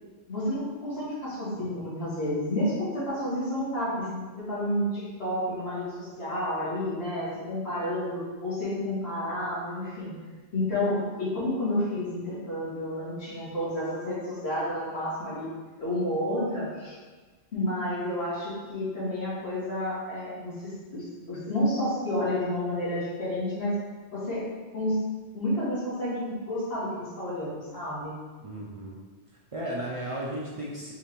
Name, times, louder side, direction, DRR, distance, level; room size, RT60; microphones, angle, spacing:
voice 1, 0.3-4.2 4.5-10.1 10.5-15.5 15.8-17.0 17.5-23.7 24.1-24.4 24.7-25.0 25.3-28.2, left 1 dB, 90° left, -9 dB, 2.0 m, -30 dB
voice 2, 28.4-29.0 29.5-30.9, right 1 dB, 45° right, -4 dB, 0.5 m, -34 dB
4.9 x 3.3 x 3.0 m, 1.3 s
omnidirectional pair, 1.1 m